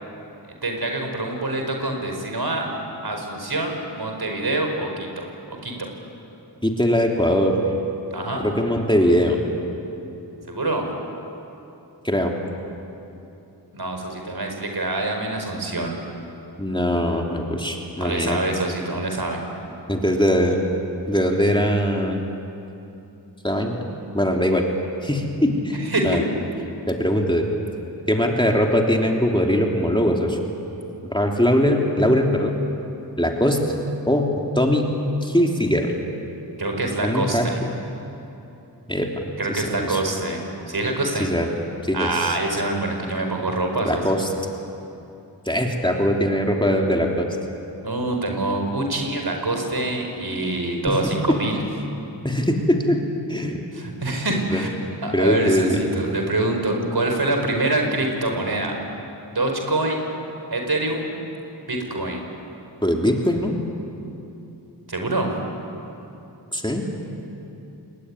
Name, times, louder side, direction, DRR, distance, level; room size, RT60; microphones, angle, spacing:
voice 1, 0.6-2.7 3.0-5.9 8.1-8.5 10.5-10.9 13.7-15.9 18.0-19.4 25.5-26.3 36.6-37.6 39.4-41.3 41.9-44.0 47.8-51.6 53.7-58.8 59.3-60.0 60.5-61.1 61.7-62.2 64.9-65.3, right 2 dB, 60° right, 3 dB, 5.2 m, -25 dB
voice 2, 6.6-7.6 8.4-9.4 12.0-12.3 16.6-18.4 19.9-20.6 21.1-22.2 23.4-23.8 24.1-24.7 25.0-26.2 26.9-27.4 28.1-30.4 31.1-32.6 33.2-33.7 34.1-34.9 35.2-35.9 37.0-37.5 38.9-40.0 41.2-41.5 41.8-42.3 43.8-44.3 45.4-47.3 50.9-51.4 52.2-53.0 53.3-53.6 54.5-55.8 62.8-63.6 66.5-66.8, equal, 10° left, 0 dB, 3.1 m, -21 dB
26.5 x 22.0 x 10.0 m, 2.8 s
wide cardioid pair, 60°, 43 cm